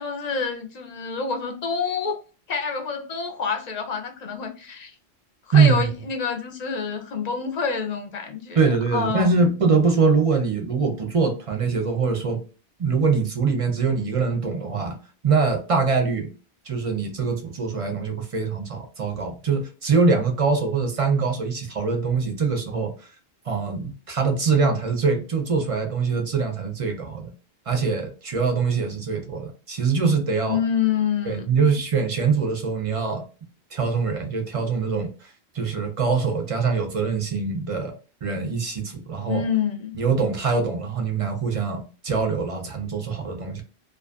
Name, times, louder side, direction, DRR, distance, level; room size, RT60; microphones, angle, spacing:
voice 1, 0.0-2.2 2.5-4.9 5.5-8.6 8.9-9.5 30.5-31.6 39.3-40.0, left 6 dB, 50° left, 0.5 m, -27 dB
voice 2, 5.5-5.9 8.5-12.4 12.8-15.0 15.2-16.3 16.7-22.9 23.5-27.3 27.7-30.6 31.3-33.2 33.7-35.1 35.5-37.9 38.2-39.4 39.9-43.6, right 4 dB, 40° right, 0.5 m, -23 dB
2.5 x 2.4 x 2.3 m
omnidirectional pair, 1.1 m